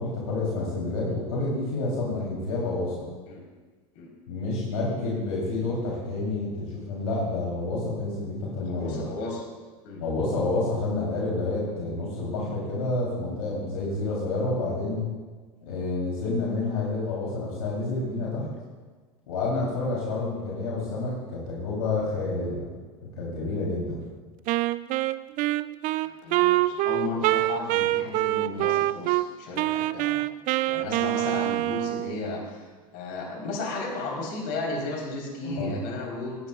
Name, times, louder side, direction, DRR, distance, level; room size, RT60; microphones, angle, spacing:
voice 1, 0.0-3.0 4.3-9.0 10.0-15.0 15.6-18.5 19.3-22.7 23.0-24.0 35.4-35.7, left 2 dB, 85° left, -5 dB, 3.3 m, -29 dB
voice 2, 8.6-9.4 9.8-10.0 13.8-13.9 19.4-19.5 26.0-30.2 30.7-32.7 32.9-36.4, left 3 dB, 60° left, -2 dB, 3.9 m, -34 dB
Wind instrument woodwind instrument, 24.5-29.3 29.6-32.2, right 17 dB, 45° right, 0.4 m, -25 dB
18.0 x 11.0 x 2.4 m, 1.4 s
hypercardioid pair, 95°, 18 cm